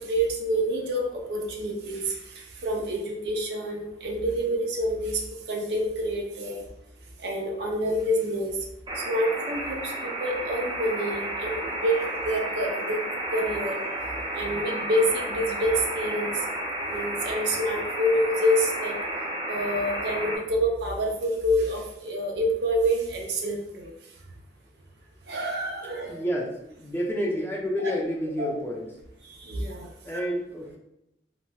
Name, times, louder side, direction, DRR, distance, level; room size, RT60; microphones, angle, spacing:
voice 1, 0.0-5.2 5.5-6.6 7.2-8.6 9.1-13.0 13.3-13.8 14.3-16.3 16.9-19.0 19.5-23.9 25.3-26.2 27.8-27.9 28.4-28.5 29.3-30.2, equal, 65° right, 1 dB, 0.6 m, -27 dB
sound 1, 8.9-20.4, right 1 dB, 25° right, 0.6 m, -32 dB
voice 2, 26.1-28.9 30.0-30.8, equal, 15° left, -3 dB, 0.6 m, -29 dB
4.1 x 2.2 x 2.3 m, 0.82 s
head